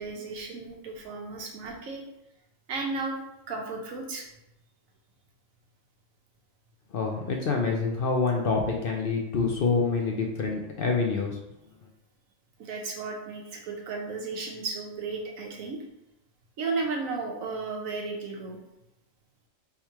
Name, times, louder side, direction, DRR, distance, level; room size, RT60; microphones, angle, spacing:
voice 1, 0.0-2.0 2.7-4.2 12.6-15.8 16.6-18.6, right 3 dB, 90° right, 1 dB, 1.2 m, -34 dB
voice 2, 6.9-11.4, left 4 dB, 60° left, 1 dB, 0.6 m, -26 dB
3.5 x 2.9 x 4.5 m, 0.84 s
omnidirectional pair, 1.4 m